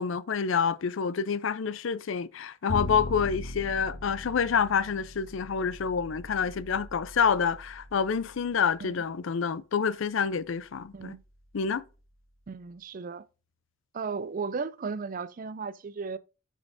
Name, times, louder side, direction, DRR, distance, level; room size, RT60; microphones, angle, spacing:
voice 1, 0.0-11.2 11.5-11.8, left 6 dB, 65° left, 0.4 m, -28 dB
Bowed string instrument, 2.7-8.9, left 1 dB, 20° left, 3.3 m, -40 dB
voice 2, 12.5-13.3 13.9-16.2, right 5 dB, 40° right, 0.4 m, -35 dB
11.0 x 5.3 x 2.6 m
head